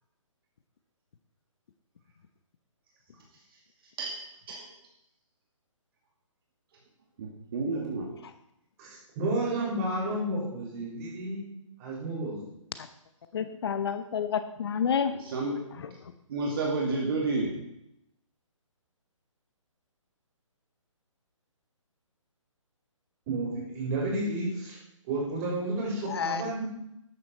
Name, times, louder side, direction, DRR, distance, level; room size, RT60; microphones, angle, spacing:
voice 1, 7.2-8.1 15.2-15.6 16.3-17.5, right 3 dB, 45° right, -1 dB, 2.3 m, -30 dB
voice 2, 8.8-11.5 11.8-12.4 23.3-24.8 25.0-26.6, right 2 dB, 30° right, -4 dB, 5.7 m, -31 dB
voice 3, 13.3-15.2 26.1-26.4, left 7 dB, 50° left, 10 dB, 0.8 m, -29 dB
13.0 x 9.5 x 4.4 m, 0.80 s
hypercardioid pair, 150°, 17 cm